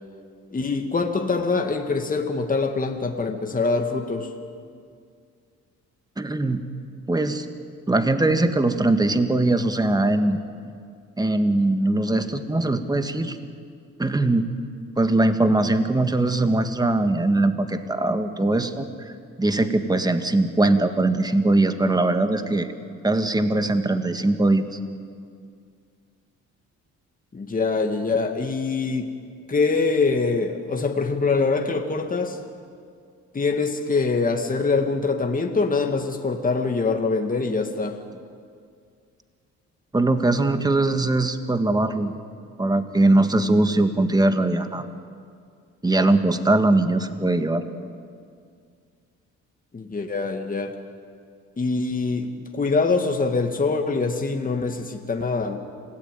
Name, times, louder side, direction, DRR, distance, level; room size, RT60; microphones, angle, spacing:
voice 1, 0.5-4.3 27.3-29.1 29.5-32.4 33.3-38.0 49.7-50.7 51.6-55.6, left 4 dB, 25° left, 4 dB, 2.1 m, -24 dB
voice 2, 6.2-6.6 7.1-7.5 7.9-10.4 11.2-13.4 14.0-14.5 15.0-19.1 19.4-22.7 23.0-24.8 39.9-42.2 42.6-44.9 45.8-47.6, right 2 dB, 15° right, 8 dB, 1.8 m, -21 dB
28.0 x 17.0 x 9.3 m, 2.2 s
cardioid pair, 90°, 30 cm